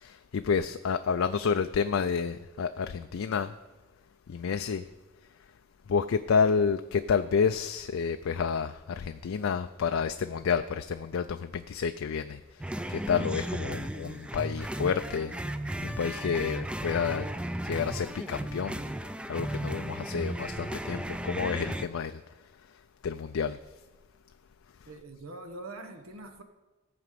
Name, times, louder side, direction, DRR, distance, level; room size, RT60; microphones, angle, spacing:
voice 1, 0.0-3.5 4.3-4.8 5.9-12.4 12.9-15.3 15.8-17.2 17.6-18.8 19.3-22.1 23.0-23.6, left 6 dB, 70° left, 8 dB, 0.4 m, -29 dB
sound 1, 12.6-21.9, right 1 dB, 5° right, 0.4 m, -35 dB
voice 2, 24.9-26.4, right 2 dB, 85° right, 7 dB, 1.1 m, -43 dB
15.0 x 5.1 x 7.6 m, 1.1 s
head